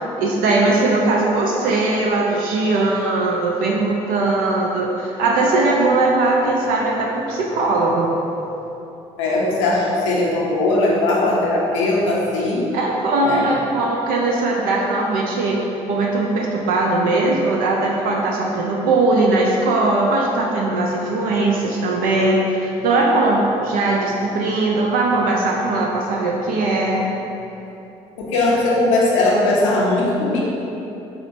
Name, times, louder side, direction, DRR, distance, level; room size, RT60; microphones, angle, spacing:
voice 1, 0.2-8.1 12.7-27.1, right 2 dB, 70° right, -2 dB, 0.4 m, -19 dB
voice 2, 9.2-12.7 13.2-13.5 28.2-30.4, left 2 dB, 90° left, -4 dB, 0.6 m, -19 dB
4.8 x 3.0 x 2.5 m, 3.0 s
hypercardioid pair, 55°, 15 cm